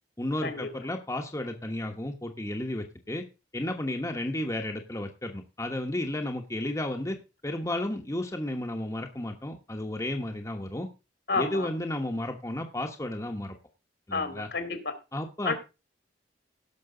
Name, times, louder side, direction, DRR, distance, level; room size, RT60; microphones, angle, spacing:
voice 1, 0.2-3.2 3.5-7.2 7.4-10.9 11.3-13.5 14.1-14.5 15.1-15.5, left 1 dB, 15° left, 3 dB, 1.2 m, -33 dB
voice 2, 11.3-11.7 14.1-15.0 15.4-15.5, left 4 dB, 70° left, 8 dB, 2.5 m, -30 dB
17.5 x 6.2 x 3.9 m, 0.28 s
head